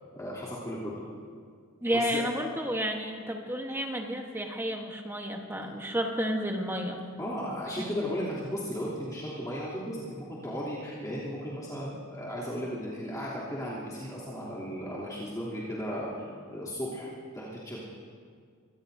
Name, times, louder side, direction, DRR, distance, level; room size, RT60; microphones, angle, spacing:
voice 1, 0.1-1.0 1.9-2.2 7.2-17.8, equal, 15° left, -9 dB, 3.0 m, -35 dB
voice 2, 1.8-7.0 7.7-7.9, equal, 10° right, 2 dB, 1.2 m, -31 dB
24.5 x 18.0 x 2.7 m, 2.1 s
head